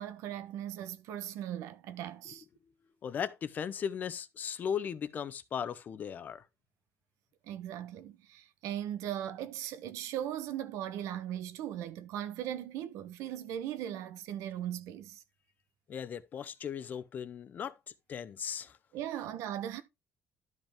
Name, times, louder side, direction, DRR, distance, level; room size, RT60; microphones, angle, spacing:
voice 1, 0.0-2.4 7.4-15.2 18.9-19.8, right 11 dB, 90° right, 1.0 m, -38 dB
voice 2, 3.0-6.4 15.9-17.7 18.1-18.8, left 8 dB, 35° left, 0.7 m, -37 dB
12.0 x 5.4 x 3.5 m
cardioid pair, 170°, 5 cm